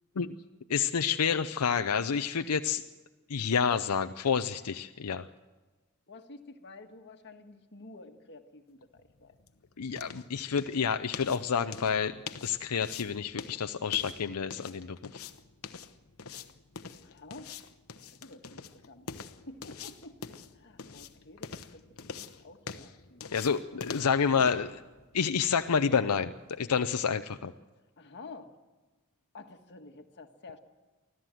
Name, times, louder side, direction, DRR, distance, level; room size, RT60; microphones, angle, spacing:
voice 1, 0.7-2.8 3.3-5.3 9.8-12.2 12.4-15.2 23.3-24.8 25.1-27.5, left 6 dB, 85° left, 8 dB, 0.6 m, -29 dB
voice 2, 6.1-9.3 17.0-17.5 18.2-18.6 18.9-19.1 19.5-23.4 28.0-28.5 29.3-30.6, left 3 dB, 50° left, 4 dB, 1.7 m, -50 dB
sound 1, 8.8-26.6, left 6 dB, 70° left, 1.0 m, -46 dB
25.0 x 15.5 x 7.7 m, 1.2 s
head